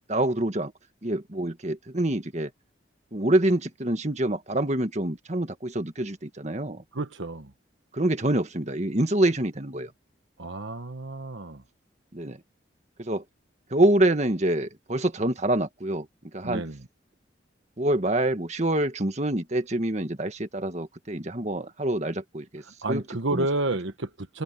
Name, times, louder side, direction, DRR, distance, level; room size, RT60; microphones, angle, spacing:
voice 1, 0.1-0.7 1.0-2.5 3.1-6.8 7.9-9.9 12.1-12.4 13.0-13.2 13.7-16.1 16.3-16.6 17.8-22.6 22.9-23.0 23.3-23.5, right 1 dB, 35° right, 1.7 m, -26 dB
voice 2, 6.9-7.5 10.4-11.6 16.4-16.9 22.8-24.4, right 2 dB, 85° right, 1.3 m, -30 dB
head